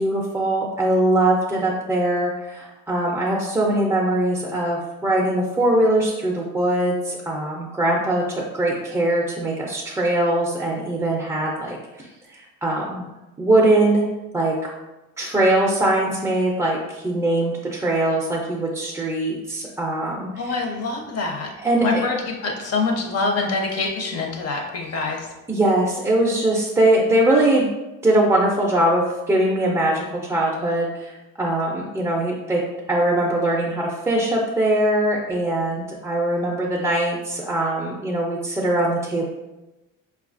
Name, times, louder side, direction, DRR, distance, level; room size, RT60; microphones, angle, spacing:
voice 1, 0.0-13.0 13.4-14.0 14.3-14.7 15.2-20.3 21.6-22.1 25.5-27.7 28.0-32.6 32.9-39.3, right 1 dB, 10° right, -4 dB, 0.4 m, -21 dB
voice 2, 20.4-21.5 21.8-25.3, left 3 dB, 45° left, 1 dB, 0.7 m, -25 dB
4.8 x 2.3 x 2.4 m, 1.0 s
cardioid pair, 125°, 34 cm